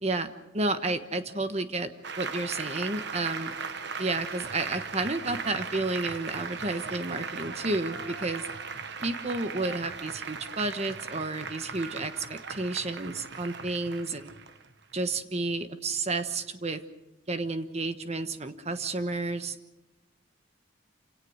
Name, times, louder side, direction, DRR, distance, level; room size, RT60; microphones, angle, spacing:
voice 1, 0.5-1.9 2.2-3.5 4.0-8.5 9.0-14.3 14.9-16.8 17.3-19.6, right 2 dB, 30° right, 9 dB, 1.2 m, -31 dB
Applause, 2.0-15.0, right 5 dB, 55° right, 1.2 m, -38 dB
27.5 x 17.5 x 6.4 m, 0.99 s
head